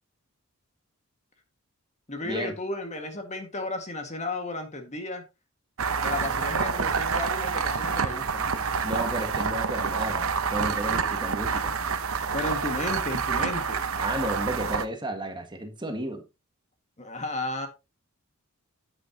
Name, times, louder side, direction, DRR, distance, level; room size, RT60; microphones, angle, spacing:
voice 1, 2.1-5.2 6.0-8.7 12.3-13.8 17.0-17.7, left 2 dB, 30° left, 1.8 m, -33 dB
sound 1, 5.8-14.9, right 5 dB, 65° right, 0.9 m, -28 dB
voice 2, 8.8-11.7 14.0-16.2, right 1 dB, 20° right, 1.6 m, -32 dB
9.7 x 9.0 x 2.9 m
head